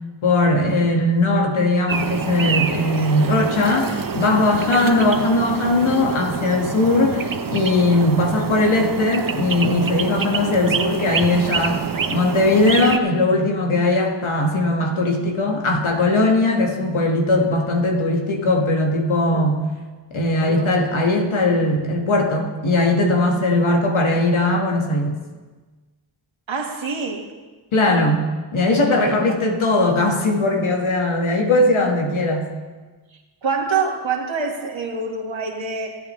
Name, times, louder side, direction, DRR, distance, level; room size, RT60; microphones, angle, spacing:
voice 1, 0.2-11.8 12.1-19.6 20.1-25.2 27.7-28.3 28.5-32.5, left 2 dB, 80° left, 1 dB, 1.9 m, -19 dB
sound 1, 1.9-13.0, right 5 dB, 45° right, 0.9 m, -26 dB
voice 2, 20.4-20.7 26.5-27.3 28.9-29.4 33.4-36.0, right 5 dB, 70° right, 2 dB, 1.9 m, -26 dB
25.0 x 8.8 x 3.3 m, 1.3 s
cardioid pair, 50°, 47 cm